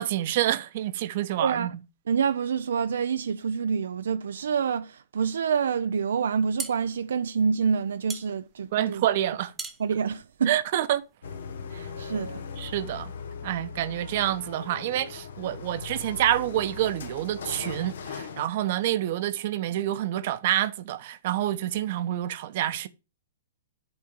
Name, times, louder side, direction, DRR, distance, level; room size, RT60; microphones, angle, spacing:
voice 1, 0.0-1.7 8.7-9.5 10.5-11.0 12.6-13.1 13.4-22.9, right 13 dB, 50° right, 0.8 m, -27 dB
voice 2, 1.4-1.7 2.1-9.0 9.8-10.5 11.7-12.4, right 6 dB, 80° right, 0.4 m, -27 dB
sound 1, 6.2-11.2, right 4 dB, 10° right, 1.0 m, -41 dB
sound 2, 11.2-18.5, left 5 dB, 75° left, 1.1 m, -39 dB
8.7 x 3.6 x 5.2 m
hypercardioid pair, 135°, 0 cm